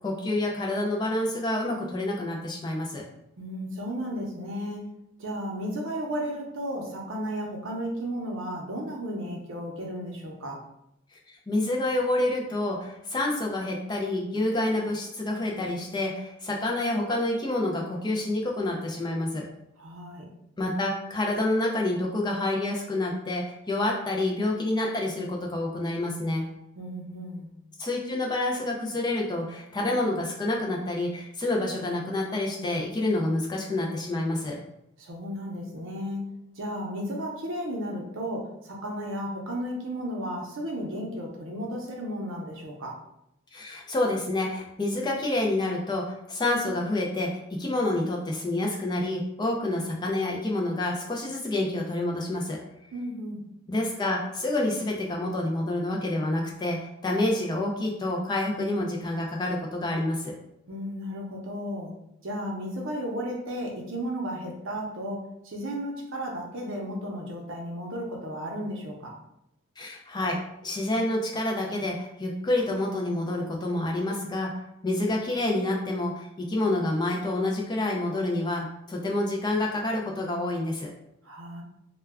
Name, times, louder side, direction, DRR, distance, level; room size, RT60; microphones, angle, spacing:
voice 1, 0.0-3.0 11.3-19.5 20.6-26.4 27.8-34.6 43.5-52.6 53.7-60.3 69.8-74.5 74.8-80.9, left 1 dB, 20° left, -1 dB, 0.3 m, -28 dB
voice 2, 3.4-4.9 5.2-10.6 19.8-20.3 26.8-27.5 35.0-36.2 36.6-43.0 52.9-53.4 60.7-61.9 62.2-69.1 81.2-81.6, equal, 65° right, 0 dB, 0.6 m, -34 dB
2.2 x 2.1 x 3.4 m, 0.82 s
head